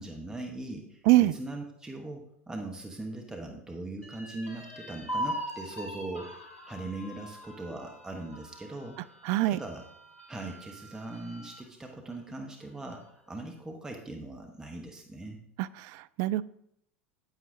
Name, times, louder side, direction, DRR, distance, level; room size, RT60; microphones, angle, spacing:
voice 1, 0.0-9.1 9.5-9.8 10.3-15.4, right 2 dB, 10° right, 2 dB, 1.2 m, -40 dB
sound 1, 4.0-11.7 12.1-12.2 12.6-13.3, equal, 85° left, 1.3 m, -41 dB
voice 2, 9.2-9.6 15.6-16.4, right 16 dB, 45° right, 17 dB, 0.3 m, -24 dB
9.4 x 8.9 x 2.8 m, 0.72 s
figure-of-eight pair, 80°, 7 cm